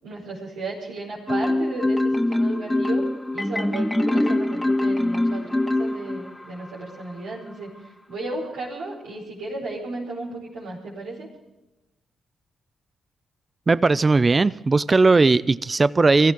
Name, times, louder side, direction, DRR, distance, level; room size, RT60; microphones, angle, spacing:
voice 1, 0.0-3.1 3.3-7.8 8.1-11.3, right 2 dB, 85° right, -9 dB, 5.3 m, -34 dB
Marimba xylophone, 1.3-6.4, left 1 dB, 10° left, 2.0 m, -23 dB
voice 2, 13.7-16.3, right 3 dB, 35° right, 18 dB, 0.5 m, -18 dB
23.5 x 15.0 x 3.8 m, 1.0 s
hypercardioid pair, 45°, 0 cm